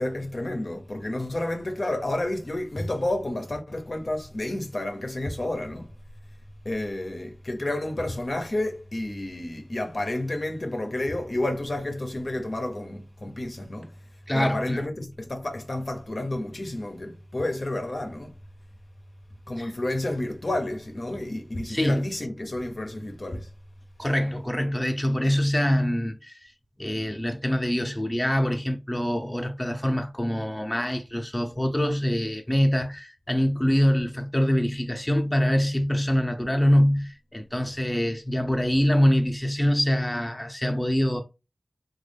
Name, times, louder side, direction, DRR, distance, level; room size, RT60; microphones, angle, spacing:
voice 1, 0.0-5.9 6.6-13.9 14.3-18.3 19.5-23.5, left 1 dB, 50° left, 0.6 m, -30 dB
voice 2, 14.3-14.8 19.6-19.7 21.7-22.0 24.0-26.5 26.8-41.2, equal, 15° left, 0.6 m, -24 dB
3.1 x 2.2 x 3.3 m
wide cardioid pair, 55°, 0 cm